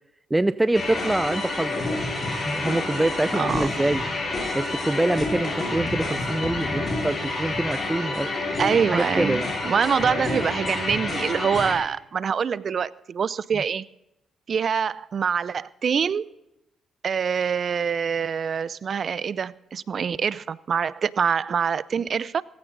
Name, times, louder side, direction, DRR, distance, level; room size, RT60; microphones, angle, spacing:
voice 1, 0.3-2.0 2.4-4.0 4.5-8.3 8.9-9.5, right 2 dB, 15° right, 0.5 m, -25 dB
sound 1, 0.7-11.8, left 2 dB, 45° left, 6.8 m, -28 dB
voice 2, 3.3-3.7 8.6-13.8 14.5-16.3 17.0-22.4, right 6 dB, 55° right, 0.6 m, -25 dB
17.5 x 15.5 x 4.0 m
supercardioid pair, 60°, 0 cm